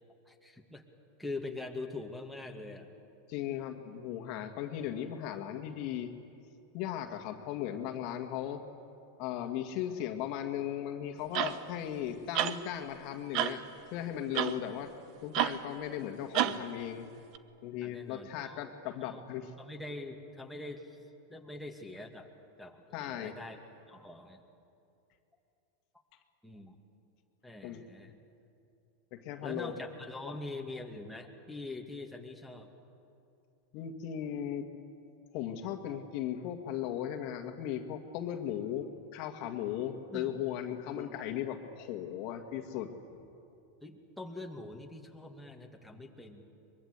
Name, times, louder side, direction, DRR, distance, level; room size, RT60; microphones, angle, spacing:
voice 1, 0.3-0.8 1.2-2.9 17.8-18.7 19.0-19.2 19.6-21.0 21.3-22.3 22.6-23.6 23.9-24.4 26.4-26.8 27.4-28.2 29.4-32.7 40.1-40.3 40.7-41.2 43.8-46.4, left 2 dB, 5° left, 1 dB, 2.2 m, -43 dB
voice 2, 3.3-6.1 6.7-8.6 9.2-13.6 13.9-14.9 15.2-17.1 17.6-19.5 22.9-23.3 27.6-27.8 29.1-29.8 30.2-30.3 33.7-34.7 35.3-42.9, left 10 dB, 55° left, 6 dB, 1.9 m, -37 dB
sound 1, 11.3-11.6 12.3-12.6 13.3-13.6 14.3-14.6 15.3-15.6 16.3-16.6 17.3-17.4, right 12 dB, 50° right, 1.0 m, -29 dB
23.0 x 22.5 x 8.2 m, 2.6 s
hypercardioid pair, 115°, 0 cm